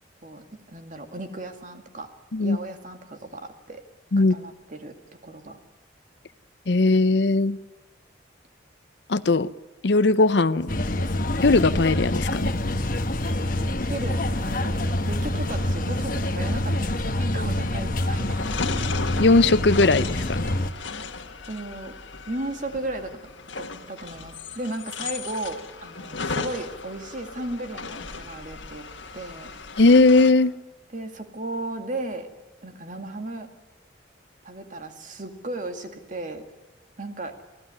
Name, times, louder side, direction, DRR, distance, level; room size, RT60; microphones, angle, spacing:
voice 1, 0.2-2.1 2.4-3.8 4.2-5.6 13.3-18.4 21.5-21.9 22.3-23.2 23.5-28.9 29.1-29.5 30.9-32.3 32.6-33.5 34.4-36.4 37.0-37.4, right 2 dB, 40° right, 6 dB, 2.1 m, -35 dB
voice 2, 6.7-7.6 9.1-9.5 9.8-10.7 11.4-12.5 19.2-20.5 29.8-30.5, left 3 dB, 65° left, 16 dB, 0.7 m, -19 dB
sound 1, 10.7-20.7, left 1 dB, 45° left, 1.2 m, -26 dB
sound 2, 18.1-30.3, left 4 dB, 80° left, 1.8 m, -36 dB
25.0 x 15.5 x 9.7 m, 1.2 s
head